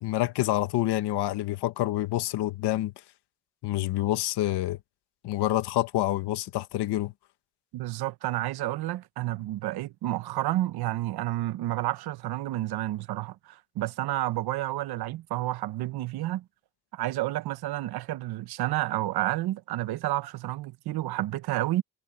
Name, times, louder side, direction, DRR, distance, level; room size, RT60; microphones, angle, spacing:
voice 1, 0.0-2.9 3.6-4.8 5.2-7.1, left 15 dB, 80° left, 1.5 m, -27 dB
voice 2, 7.7-16.4 16.9-21.8, right 16 dB, 70° right, 0.9 m, -30 dB
cardioid pair, 180°, 40 cm